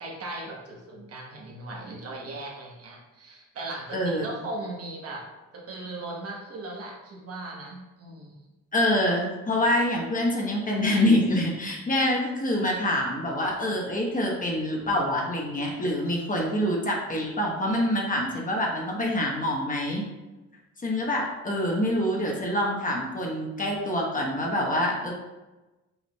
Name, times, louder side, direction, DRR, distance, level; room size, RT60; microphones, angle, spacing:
voice 1, 0.0-5.3 5.5-8.4, right 2 dB, 50° right, -1 dB, 1.2 m, -38 dB
voice 2, 3.9-4.3 8.7-20.1 20.8-25.1, left 1 dB, 25° left, -1 dB, 1.1 m, -26 dB
5.6 x 3.8 x 2.3 m, 1.1 s
cardioid pair, 90°, 30 cm